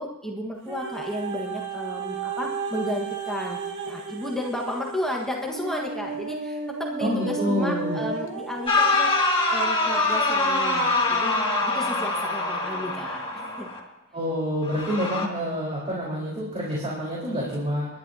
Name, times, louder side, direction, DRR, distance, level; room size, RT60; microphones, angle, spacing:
voice 1, 0.0-9.1 9.5-11.3 11.6-13.7, left 1 dB, ahead, -1 dB, 1.4 m, -33 dB
sound 1, 0.7-9.8 10.4-10.5, right 5 dB, 60° right, 2.0 m, -33 dB
voice 2, 7.0-8.0 14.1-17.9, equal, 30° right, -6 dB, 4.1 m, -27 dB
sound 2, 8.7-13.8 14.7-15.3, left 2 dB, 25° left, 2.2 m, -24 dB
29.0 x 11.5 x 2.8 m, 1.1 s
head